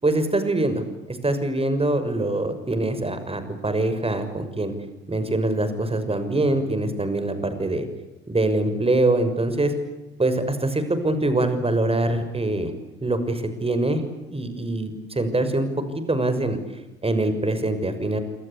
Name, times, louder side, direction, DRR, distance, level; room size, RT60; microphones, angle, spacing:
voice 1, 0.0-0.8 1.1-4.7 5.1-7.9 8.3-9.7 10.2-12.7 13.0-14.0 14.3-16.6 17.0-18.2, right 2 dB, 20° right, 10 dB, 6.5 m, -24 dB
27.0 x 26.0 x 8.5 m, 1.0 s
figure-of-eight pair, 55°, 31 cm